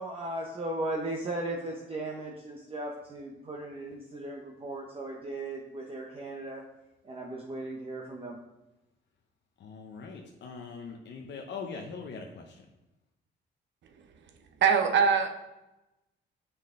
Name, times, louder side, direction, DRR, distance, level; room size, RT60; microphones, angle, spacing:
voice 1, 0.0-6.6 7.0-8.4, right 1 dB, 30° right, 0 dB, 1.0 m, -37 dB
voice 2, 9.6-12.6, left 5 dB, 65° left, 1 dB, 0.9 m, -41 dB
voice 3, 14.6-15.3, right 6 dB, 65° right, 7 dB, 0.9 m, -22 dB
7.3 x 5.8 x 3.8 m, 0.96 s
cardioid pair, 90°, 20 cm